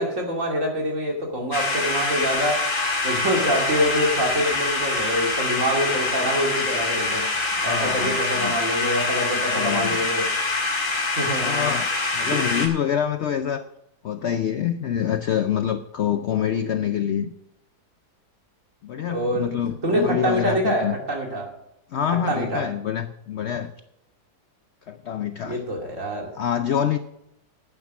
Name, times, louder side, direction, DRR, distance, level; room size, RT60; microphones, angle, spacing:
voice 1, 0.0-2.7 3.0-7.3 7.6-10.3 11.2-11.7 12.2-12.6 19.1-19.5 19.8-21.5 22.3-22.6 25.4-26.3, equal, 45° right, 2.8 m, -25 dB
sound 1, 1.5-12.7, left 3 dB, 50° left, 2.5 m, -25 dB
voice 2, 7.6-8.6 9.5-10.0 11.4-13.6 14.0-17.3 18.8-20.9 21.9-23.7 24.9-25.6 26.3-27.0, left 9 dB, 80° left, 0.6 m, -26 dB
11.5 x 8.9 x 6.0 m
omnidirectional pair, 1.8 m